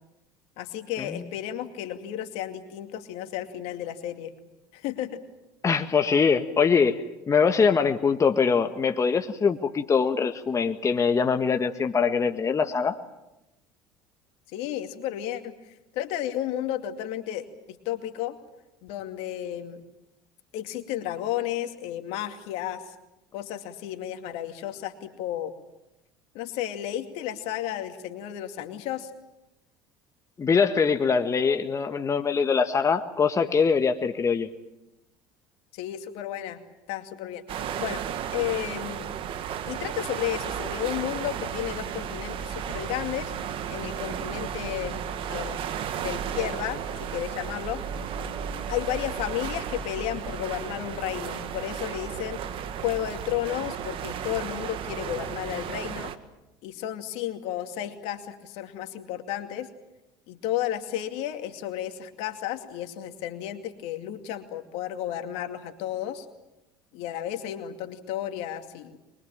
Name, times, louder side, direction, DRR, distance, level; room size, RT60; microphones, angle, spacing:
voice 1, 0.6-4.3 4.7-5.2 14.5-18.4 18.8-19.8 20.5-22.9 23.3-25.5 26.3-29.1 35.7-36.6 36.9-38.0 38.3-39.1 39.7-43.3 43.7-45.0 45.3-45.6 46.0-46.8 47.1-47.8 48.7-52.4 52.8-56.1 56.6-59.7 60.3-66.3 66.9-69.0, left 12 dB, 70° left, 7 dB, 2.4 m, -33 dB
voice 2, 5.6-13.0 30.4-34.5, left 5 dB, 30° left, 6 dB, 1.6 m, -23 dB
sound 1, 37.5-56.2, right 8 dB, 55° right, 1.8 m, -34 dB
23.5 x 22.0 x 8.9 m, 0.93 s
hypercardioid pair, 75°, 11 cm